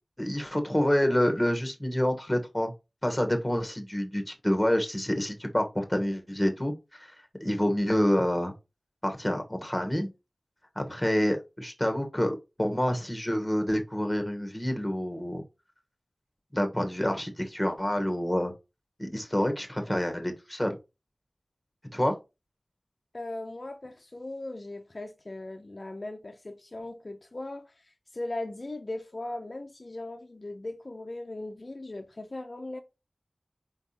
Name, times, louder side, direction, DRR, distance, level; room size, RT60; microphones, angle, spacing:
voice 1, 0.2-2.7 3.0-7.1 7.4-8.5 9.0-10.1 10.7-15.4 16.5-18.5 19.0-20.7 21.9-22.1, equal, 15° left, 1.3 m, -27 dB
voice 2, 23.1-32.8, left 2 dB, 55° left, 0.6 m, -38 dB
4.6 x 3.5 x 2.8 m
wide cardioid pair, 45°, 0 cm